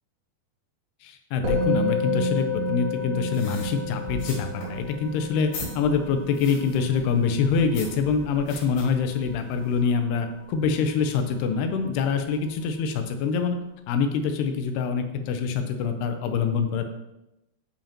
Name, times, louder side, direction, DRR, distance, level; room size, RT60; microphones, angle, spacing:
voice 1, 1.0-13.6 13.9-16.9, left 5 dB, 85° left, 7 dB, 2.7 m, -25 dB
Musical instrument, 1.4-11.0, left 1 dB, 85° right, 4.0 m, -31 dB
sound 1, 3.3-9.8, left 2 dB, 70° left, 4.6 m, -41 dB
10.0 x 5.0 x 2.8 m, 0.92 s
omnidirectional pair, 4.7 m